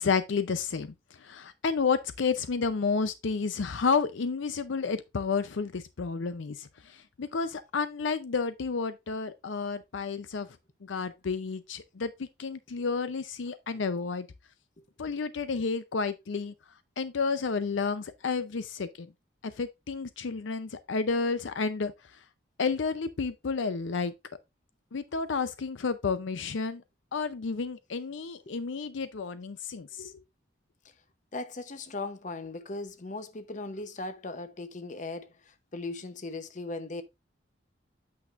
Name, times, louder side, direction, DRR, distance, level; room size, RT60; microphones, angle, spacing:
voice 1, 0.0-10.5 10.8-14.3 15.0-16.5 17.0-19.1 19.4-21.9 22.6-24.1 24.9-26.8 27.1-30.1, left 5 dB, 75° left, 0.5 m, -31 dB
voice 2, 31.3-37.0, left 2 dB, 40° left, 0.8 m, -38 dB
8.5 x 6.2 x 2.4 m
head